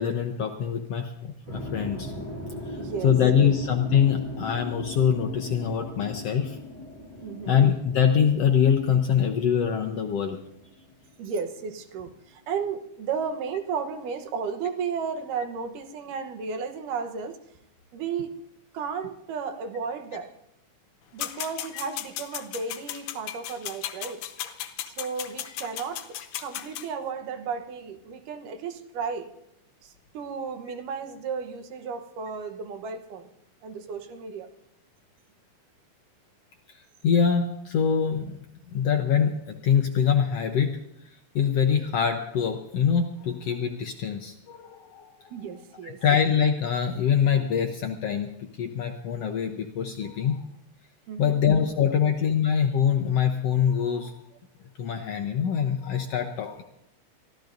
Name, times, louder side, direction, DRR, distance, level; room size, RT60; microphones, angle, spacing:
voice 1, 0.0-2.1 2.7-2.8 3.0-6.6 7.5-10.4 21.7-21.8 25.4-25.5 36.7-36.8 37.0-38.4 38.7-40.7 41.3-45.3 45.8-50.4 51.2-54.1 54.8-56.6, left 7 dB, 70° left, 4 dB, 1.5 m, -24 dB
sound 1, 1.5-11.6, left 1 dB, 60° right, 8.8 m, -39 dB
voice 2, 2.8-3.5 7.2-7.6 11.2-17.4 17.9-18.4 18.7-20.3 21.1-24.2 24.8-29.3 29.8-33.3 33.6-34.5 45.3-46.0 51.1-51.4, right 6 dB, 80° right, 7 dB, 2.6 m, -34 dB
sound 2, 21.2-26.9, left 12 dB, 90° left, 2.5 m, -36 dB
23.5 x 15.0 x 2.6 m, 0.80 s
omnidirectional pair, 3.7 m